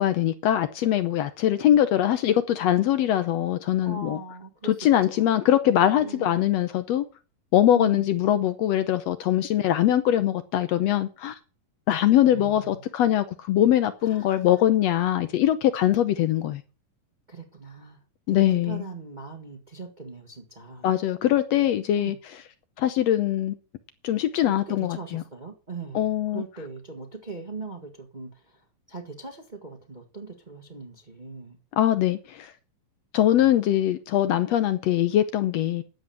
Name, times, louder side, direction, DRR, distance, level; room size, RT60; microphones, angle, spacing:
voice 1, 0.0-4.2 4.6-7.1 7.5-11.3 11.9-16.6 18.3-18.8 20.8-22.2 22.8-23.5 24.0-25.2 25.9-26.4 31.8-32.5 33.1-35.8, left 12 dB, 75° left, 1.5 m, -22 dB
voice 2, 3.8-4.8 5.1-5.3 6.0-6.5 7.7-8.1 12.2-12.8 13.1-13.2 14.0-14.6 17.3-18.0 18.3-20.9 22.0-22.2 24.4-31.6, right 4 dB, 40° right, 0.6 m, -40 dB
11.5 x 8.0 x 7.0 m
omnidirectional pair, 3.8 m